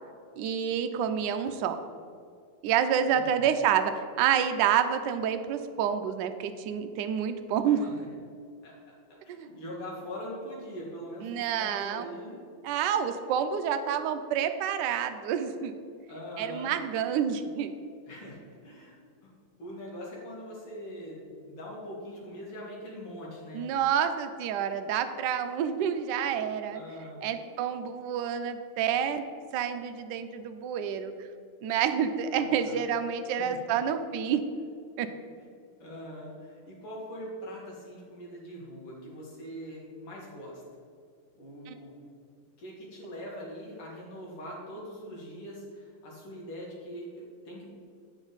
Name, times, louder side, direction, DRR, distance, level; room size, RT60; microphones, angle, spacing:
voice 1, 0.4-1.8 2.6-7.9 11.2-12.1 12.6-15.7 16.4-17.7 23.5-26.8 27.2-31.1 31.6-34.4 35.0-35.1 41.7-41.8, right 8 dB, 80° right, 8 dB, 0.9 m, -28 dB
voice 2, 3.1-3.6 7.7-8.1 8.6-12.4 16.1-16.7 18.1-19.3 19.6-23.7 26.7-27.4 32.3-32.9 33.4-33.7 35.8-40.6 41.4-42.0 42.6-47.7, equal, 85° left, -4 dB, 2.5 m, -42 dB
8.0 x 4.9 x 3.9 m, 2.3 s
omnidirectional pair, 2.4 m